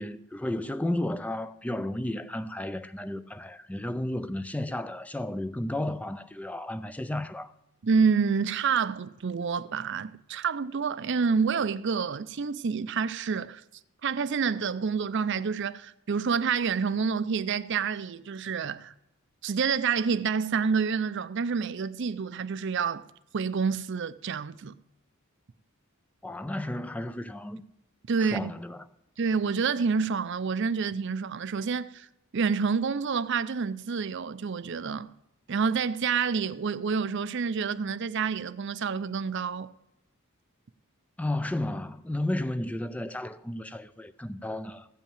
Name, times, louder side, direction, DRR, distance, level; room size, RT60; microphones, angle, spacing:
voice 1, 0.0-7.5 26.2-27.6 28.2-28.9 41.2-44.9, left 1 dB, 5° left, 0.4 m, -33 dB
voice 2, 7.8-13.6 14.0-18.9 19.4-23.1 23.3-24.8 28.1-28.5 29.2-32.1 32.3-35.1 35.5-39.7, right 5 dB, 55° right, 0.5 m, -28 dB
15.5 x 5.6 x 8.9 m
head